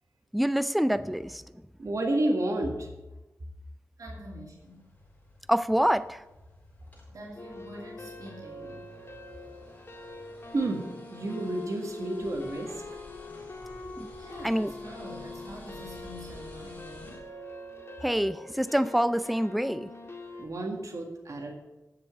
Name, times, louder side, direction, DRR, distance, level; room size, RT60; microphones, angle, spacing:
voice 1, 0.3-1.4 5.5-6.2 14.0-14.1 14.4-14.7 18.0-19.9, equal, ahead, 14 dB, 0.4 m, -26 dB
voice 2, 1.8-2.9 10.5-10.8 11.1-12.7 20.4-21.5, right 1 dB, 65° right, 0 dB, 1.9 m, -30 dB
voice 3, 4.0-4.9 7.1-8.9 14.2-17.3, equal, 85° right, -2 dB, 2.7 m, -46 dB
sound 1, 4.6-17.2, left 1 dB, 25° left, 4.3 m, -52 dB
sound 2, 7.4-20.5, left 2 dB, 45° left, 2.1 m, -44 dB
9.7 x 7.3 x 7.8 m, 1.1 s
wide cardioid pair, 75°, 6 cm